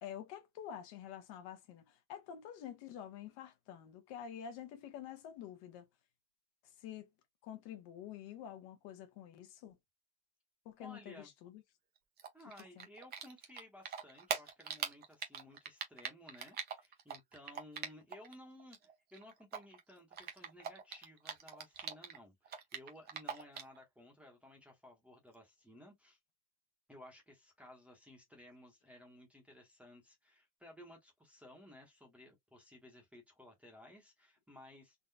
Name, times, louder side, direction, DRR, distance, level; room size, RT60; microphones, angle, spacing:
voice 1, 0.0-5.9 6.8-7.0 7.4-9.7 10.6-11.1 11.4-11.6 12.8-12.9, left 9 dB, 55° left, 1.0 m, -48 dB
voice 2, 10.8-11.3 12.3-26.2 26.9-35.0, left 1 dB, 5° right, 0.9 m, -57 dB
Typing, 12.2-13.6 13.9-18.3 18.6-22.2 22.5-23.8, right 7 dB, 20° right, 0.5 m, -42 dB
3.8 x 2.2 x 2.7 m
cardioid pair, 160°, 46 cm